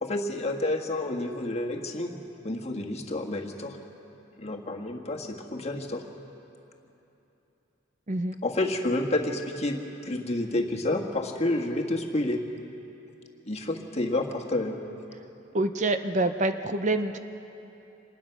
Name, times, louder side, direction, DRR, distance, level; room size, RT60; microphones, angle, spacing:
voice 1, 0.0-2.2 2.4-3.8 4.4-6.0 8.4-12.4 13.5-14.8, left 2 dB, 35° left, 2 dB, 1.6 m, -29 dB
voice 2, 15.5-17.2, right 2 dB, 40° right, 9 dB, 0.7 m, -26 dB
26.5 x 20.0 x 5.9 m, 2.9 s
head